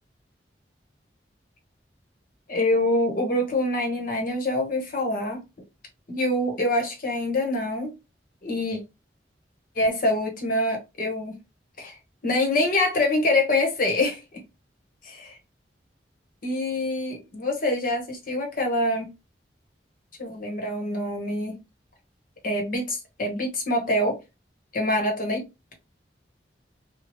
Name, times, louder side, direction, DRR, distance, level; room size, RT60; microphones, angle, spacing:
voice 1, 2.5-5.4 6.1-7.9 8.4-8.8 9.7-11.4 11.8-12.0 12.2-14.2 16.4-19.1 20.2-21.6 22.4-24.2 24.7-25.4, left 1 dB, 50° left, 1.1 m, -25 dB
2.9 x 2.2 x 3.0 m
head